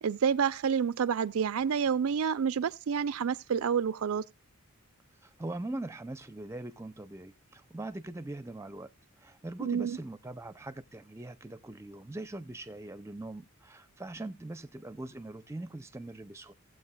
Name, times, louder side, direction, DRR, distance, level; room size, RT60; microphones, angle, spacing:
voice 1, 0.0-4.2 9.6-10.0, right 7 dB, 80° right, 0.4 m, -28 dB
voice 2, 5.2-8.9 9.2-16.5, right 2 dB, 15° right, 0.5 m, -41 dB
18.0 x 7.7 x 2.3 m
head